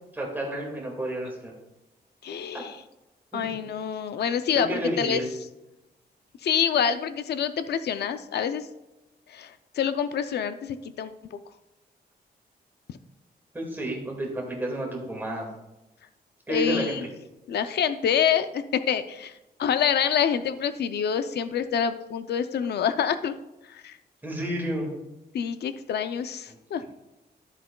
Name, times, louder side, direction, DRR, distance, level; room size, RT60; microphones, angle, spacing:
voice 1, 0.1-1.5 2.5-2.6 3.3-3.5 4.5-5.3 13.5-15.5 16.5-17.0 24.2-24.9 26.5-26.6, right 1 dB, 10° right, -1 dB, 1.8 m, -30 dB
voice 2, 2.2-2.8 3.3-5.2 6.4-8.7 9.3-11.4 16.5-17.0 17.5-19.3 19.6-23.3 23.7-24.0 25.3-26.8, left 8 dB, 80° left, 11 dB, 0.4 m, -27 dB
12.5 x 7.6 x 2.2 m, 0.97 s
wide cardioid pair, 180°, 17 cm